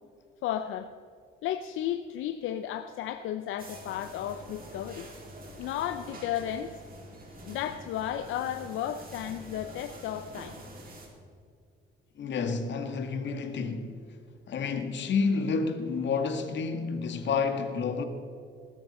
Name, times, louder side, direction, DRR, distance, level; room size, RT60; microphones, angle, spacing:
voice 1, 0.4-0.9 1.4-5.1 5.6-6.8 7.4-10.5, left 11 dB, 85° left, 0.7 m, -33 dB
sound 1, 3.6-11.1, right 1 dB, 45° right, 4.3 m, -46 dB
voice 2, 12.2-13.9 14.5-18.0, left 5 dB, 65° left, 1.9 m, -29 dB
20.5 x 13.0 x 4.3 m
cardioid pair, 90°, 20 cm